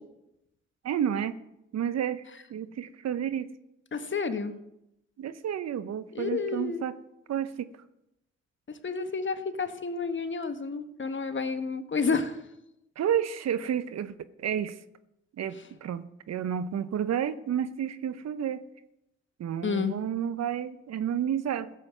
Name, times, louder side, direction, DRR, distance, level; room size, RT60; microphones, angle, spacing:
voice 1, 0.8-1.4 1.7-2.2 2.5-3.5 5.2-7.0 7.3-7.7 13.0-14.1 14.4-14.8 15.4-18.6 19.4-21.7, right 9 dB, 60° right, 14 dB, 0.9 m, -30 dB
voice 2, 3.9-4.5 6.1-6.9 8.8-12.4 19.6-20.0, left 4 dB, 40° left, 10 dB, 1.4 m, -30 dB
16.0 x 7.5 x 6.0 m, 0.86 s
hypercardioid pair, 45°, 29 cm